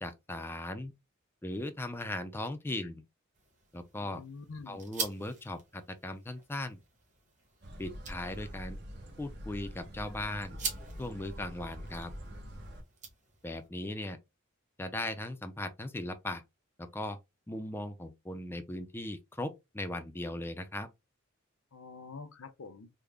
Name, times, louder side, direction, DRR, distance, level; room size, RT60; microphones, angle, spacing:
voice 1, 0.0-0.9 1.4-3.0 3.7-4.2 4.7-6.8 7.8-8.8 9.2-10.6 11.0-12.1 13.4-14.2 14.8-16.4 16.8-17.2 17.5-20.9, left 1 dB, 10° left, 0.4 m, -38 dB
sound 1, 3.3-13.7, right 5 dB, 35° right, 1.1 m, -45 dB
voice 2, 4.0-4.8 21.7-22.9, left 4 dB, 85° left, 0.6 m, -46 dB
sound 2, 7.6-12.8, equal, 55° right, 0.9 m, -45 dB
3.6 x 2.1 x 3.3 m
head